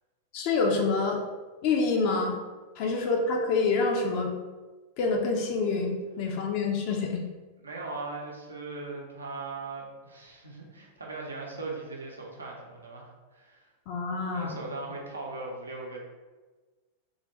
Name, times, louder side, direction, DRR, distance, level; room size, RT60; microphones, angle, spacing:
voice 1, 0.3-1.2 1.6-2.4 2.8-4.3 5.0-7.2 13.9-14.6, left 4 dB, 45° left, 1 dB, 0.4 m, -27 dB
voice 2, 7.6-13.7 14.3-16.0, right 3 dB, 75° right, -1 dB, 0.6 m, -39 dB
3.2 x 2.5 x 3.0 m, 1.3 s
figure-of-eight pair, 90°, 0 cm